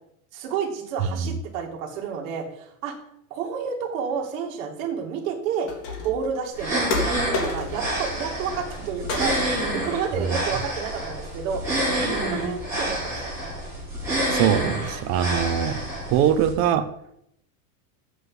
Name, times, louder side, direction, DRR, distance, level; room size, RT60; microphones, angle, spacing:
voice 1, 0.3-2.9 3.3-5.7 6.0-11.6 11.9-13.3, right 6 dB, 60° right, 2 dB, 2.7 m, -30 dB
sound 1, 5.7-6.2 6.9-7.9 8.2-8.8 9.1-9.8, left 3 dB, 50° left, 3.1 m, -30 dB
sound 2, 6.5-16.5, right 1 dB, 5° right, 4.8 m, -28 dB
voice 2, 14.3-15.8 16.1-16.9, right 9 dB, 30° right, 12 dB, 0.5 m, -22 dB
8.1 x 6.5 x 7.8 m, 0.74 s
supercardioid pair, 165°, 46 cm